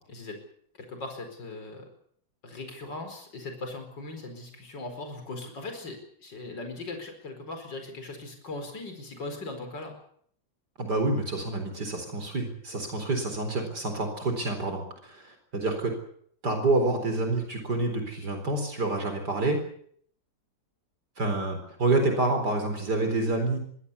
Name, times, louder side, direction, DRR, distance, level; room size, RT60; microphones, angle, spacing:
voice 1, 0.1-0.4 0.8-1.9 2.4-9.9, left 2 dB, 70° left, 5 dB, 5.3 m, -39 dB
voice 2, 10.8-15.9 16.4-19.6 21.2-23.6, right 2 dB, 60° right, 5 dB, 4.6 m, -28 dB
23.5 x 16.5 x 8.4 m, 0.63 s
omnidirectional pair, 2.0 m